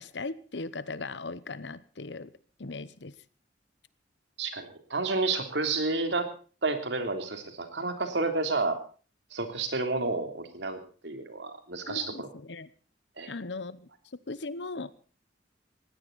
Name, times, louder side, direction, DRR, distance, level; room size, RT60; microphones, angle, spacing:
voice 1, 0.0-2.3 2.6-3.1 11.9-12.7 13.2-13.9 14.3-14.9, left 3 dB, 70° left, 17 dB, 1.0 m, -38 dB
voice 2, 4.4-6.3 6.6-8.8 9.3-12.3 13.2-13.3, right 3 dB, 70° right, 7 dB, 3.4 m, -30 dB
19.5 x 16.0 x 4.1 m, 0.38 s
head